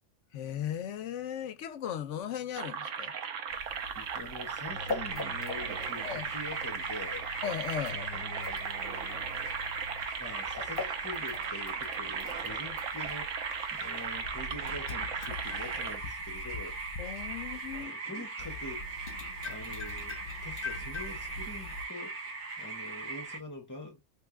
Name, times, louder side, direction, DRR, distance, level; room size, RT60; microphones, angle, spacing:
voice 1, 0.3-3.1 6.0-6.2 7.4-8.0 17.0-18.3, left 9 dB, 75° left, 1.0 m, -37 dB
sound 1, 2.6-16.0, right 7 dB, 90° right, 1.1 m, -38 dB
sound 2, 3.5-17.8 18.4-21.9, left 3 dB, 50° left, 1.2 m, -43 dB
voice 2, 3.9-7.3 7.9-9.3 10.1-13.3 13.7-16.8 17.1-17.3 17.7-18.9 19.4-22.2 22.6-24.0, left 2 dB, 15° left, 1.4 m, -45 dB
sound 3, 5.1-23.4, right 4 dB, 65° right, 1.5 m, -40 dB
3.4 x 3.4 x 2.2 m
omnidirectional pair, 1.3 m